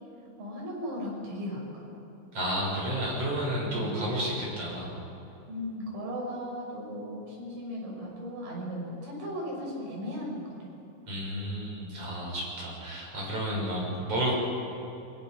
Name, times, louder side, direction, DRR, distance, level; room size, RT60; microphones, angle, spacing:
voice 1, 0.4-2.0 3.7-4.2 5.5-10.7, equal, 70° right, -3 dB, 8.8 m, -37 dB
voice 2, 2.3-4.9 11.1-14.3, right 1 dB, 30° right, -4 dB, 7.7 m, -31 dB
25.5 x 23.5 x 6.2 m, 3.0 s
omnidirectional pair, 5.9 m